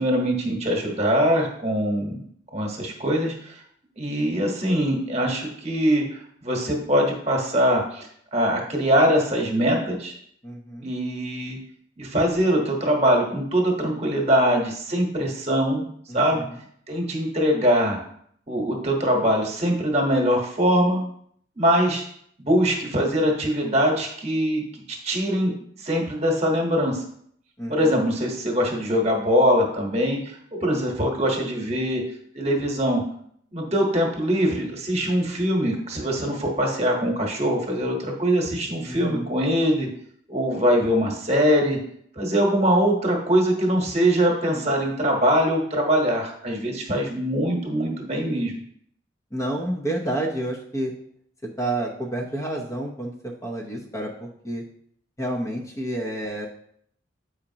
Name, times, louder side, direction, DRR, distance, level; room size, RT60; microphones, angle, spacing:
voice 1, 0.0-2.3 2.5-3.6 4.0-10.1 10.8-11.6 12.0-15.8 16.1-16.4 16.9-18.0 18.5-21.0 21.6-22.0 22.4-24.6 24.9-25.5 25.8-27.0 27.7-32.0 32.3-33.0 33.5-39.9 40.3-41.8 42.1-48.5, equal, 35° right, 1 dB, 1.3 m, -22 dB
voice 2, 10.4-10.9 16.1-16.6 27.6-28.0 38.9-39.3 49.3-50.9 51.6-54.6 55.2-56.5, right 1 dB, 15° left, -1 dB, 0.8 m, -30 dB
8.5 x 5.0 x 2.9 m, 0.66 s
head